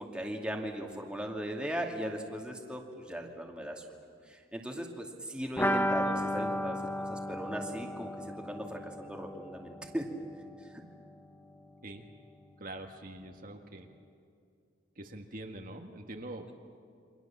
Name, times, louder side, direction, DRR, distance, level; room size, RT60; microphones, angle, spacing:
voice 1, 0.0-3.8 4.3-10.0, equal, 5° right, 1 dB, 2.4 m, -38 dB
sound 1, 5.6-11.2 11.4-11.5 11.8-11.9, equal, 10° left, 0.9 m, -34 dB
voice 2, 12.6-13.9 14.9-16.5, right 1 dB, 50° right, 3 dB, 1.6 m, -44 dB
29.0 x 25.0 x 7.3 m, 2.4 s
head